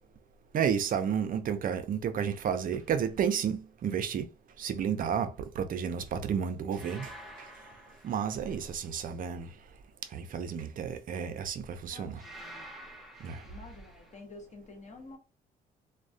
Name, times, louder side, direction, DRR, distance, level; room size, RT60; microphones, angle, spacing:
voice 1, 0.5-4.3 4.6-7.5 8.0-9.5 10.1-12.2 13.2-13.4, right 7 dB, 55° right, 0.4 m, -31 dB
sound 1, 2.6-2.9 6.7-8.9 12.1-14.2, equal, ahead, 0.6 m, -50 dB
voice 2, 11.9-12.8 13.4-15.2, left 3 dB, 45° left, 0.9 m, -49 dB
2.3 x 2.1 x 2.6 m
cardioid pair, 75°, 17 cm